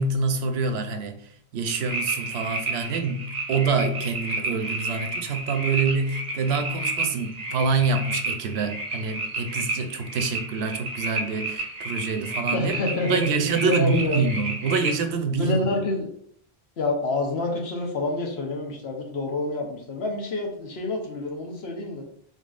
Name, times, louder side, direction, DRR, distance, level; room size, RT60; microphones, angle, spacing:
voice 1, 0.0-12.7 13.1-15.6, right 4 dB, 80° right, 0.8 m, -26 dB
sound 1, 1.7-15.0, right 2 dB, 45° right, 0.7 m, -31 dB
voice 2, 12.5-14.2 15.4-16.1 16.8-22.0, left 2 dB, 80° left, 1.2 m, -28 dB
4.0 x 3.6 x 2.4 m
omnidirectional pair, 1.1 m